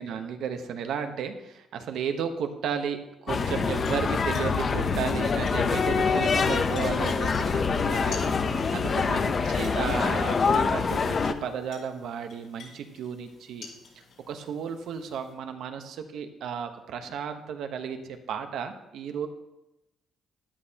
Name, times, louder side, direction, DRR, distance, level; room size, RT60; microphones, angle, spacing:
voice 1, 0.0-8.3 8.7-13.7 13.9-19.3, right 7 dB, 80° right, 7 dB, 1.1 m, -34 dB
sound 1, 3.3-15.3, left 5 dB, 85° left, 4.5 m, -50 dB
sound 2, 3.3-11.3, left 5 dB, 45° left, 0.8 m, -25 dB
13.5 x 11.0 x 2.9 m, 0.94 s
cardioid pair, 90°, 0 cm